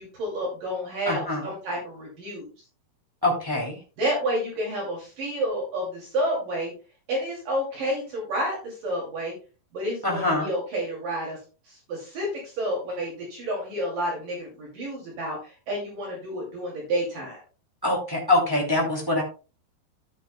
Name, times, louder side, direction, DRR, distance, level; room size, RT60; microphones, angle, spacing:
voice 1, 0.0-2.5 4.0-6.7 7.1-9.3 9.7-11.4 11.7-17.4, right 1 dB, 50° right, -2 dB, 3.8 m, -30 dB
voice 2, 1.0-1.5 3.2-3.8 10.0-10.5 17.8-19.2, left 2 dB, 10° right, -2 dB, 1.0 m, -24 dB
12.5 x 9.1 x 2.2 m, 0.34 s
omnidirectional pair, 5.4 m